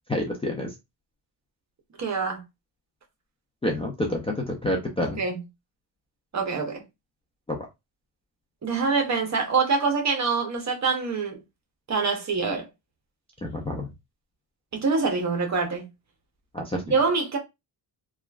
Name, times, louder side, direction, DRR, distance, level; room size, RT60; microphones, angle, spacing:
voice 1, 0.1-0.7 3.6-5.2 7.5-7.7 13.4-13.9 16.5-17.0, left 1 dB, 15° left, 0.5 m, -28 dB
voice 2, 2.0-2.4 5.0-5.4 6.3-6.8 8.6-11.4 11.9-12.7 14.7-15.9 16.9-17.4, right 4 dB, 40° right, 0.9 m, -25 dB
2.9 x 2.4 x 2.3 m
cardioid pair, 115°, 44 cm